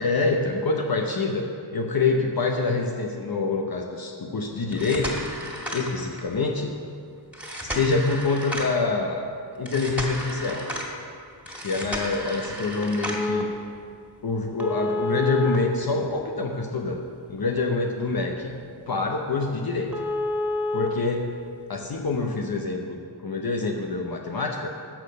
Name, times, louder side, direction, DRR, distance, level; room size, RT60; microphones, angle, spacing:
voice 1, 0.0-5.3 5.7-6.7 7.6-9.2 9.5-10.7 11.5-13.5 14.2-17.0 17.3-18.6 18.9-19.9 20.7-21.3 21.7-24.7, left 3 dB, 50° left, 1 dB, 0.9 m, -26 dB
sound 1, 4.6-6.4 7.3-8.9 9.7-10.9 11.5-13.4 14.6-16.5 16.9-17.0 17.5-17.6 18.1-18.2 18.5-18.6 19.0-19.1 19.4-19.5 19.9-20.9 22.0-22.1, left 1 dB, 5° right, 2.0 m, -31 dB
12.0 x 6.7 x 5.3 m, 2.3 s
cardioid pair, 60°, 47 cm